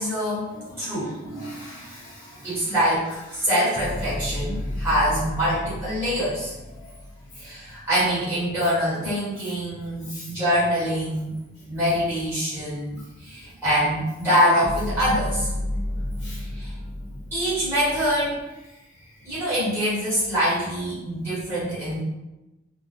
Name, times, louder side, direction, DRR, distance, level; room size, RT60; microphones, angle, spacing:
voice 1, 0.0-0.5 0.8-1.1 2.4-6.5 7.4-11.3 11.7-13.0 13.2-15.5 16.5-16.7 17.3-18.3 19.2-22.0, equal, 10° right, -12 dB, 1.0 m, -24 dB
voice 2, 0.5-2.7 3.4-3.5 5.4-5.6 6.7-6.8 10.1-10.3 16.2-16.4, equal, 50° left, -9 dB, 1.1 m, -40 dB
sound 1, 3.8-8.0 14.6-18.4, left 1 dB, 30° left, 0.4 m, -32 dB
2.3 x 2.0 x 2.7 m, 1.0 s
head